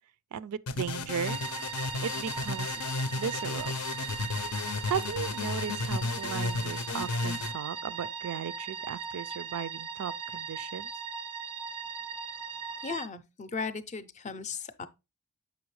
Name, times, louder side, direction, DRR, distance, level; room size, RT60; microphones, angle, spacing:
voice 1, 0.3-2.8 3.2-3.7 4.9-10.9, right 8 dB, 80° right, 0.4 m, -36 dB
sound 1, 0.7-7.5, left 3 dB, 80° left, 0.6 m, -33 dB
sound 2, 1.2-13.1, right 5 dB, 20° right, 0.4 m, -38 dB
voice 2, 12.8-14.9, left 5 dB, 30° left, 0.5 m, -36 dB
7.1 x 5.2 x 3.1 m
head